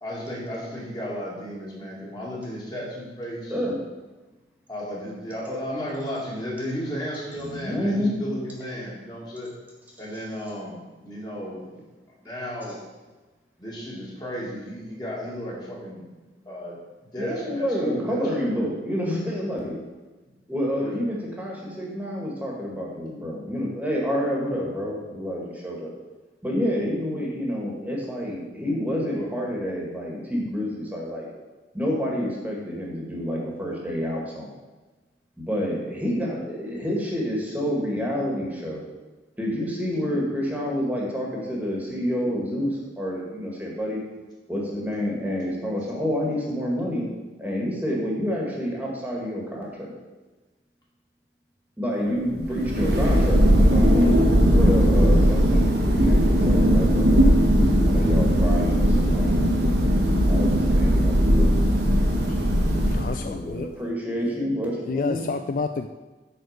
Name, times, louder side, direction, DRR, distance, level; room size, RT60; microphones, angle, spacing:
voice 1, 0.0-3.5 4.7-9.5 10.0-11.8 12.2-12.8 13.6-16.1 16.5-16.8 17.1-18.5 20.7-20.9 29.1-29.4 51.9-52.1 52.5-53.0 59.1-59.4, equal, 25° left, -5 dB, 2.3 m, -34 dB
voice 2, 7.4-8.2 17.2-19.8 20.5-25.9 26.4-31.3 31.7-34.6 35.4-38.8 39.4-44.0 44.5-47.1 47.4-49.9 51.8-54.2 54.5-57.2 57.9-61.5 63.2-65.3, equal, 10° right, -3 dB, 1.8 m, -28 dB
Thunder, 52.4-63.4, equal, 85° right, 1.6 m, -19 dB
voice 3, 62.9-63.7 64.9-65.9, left 4 dB, 50° left, 8 dB, 0.3 m, -29 dB
9.2 x 4.3 x 6.6 m, 1.2 s
head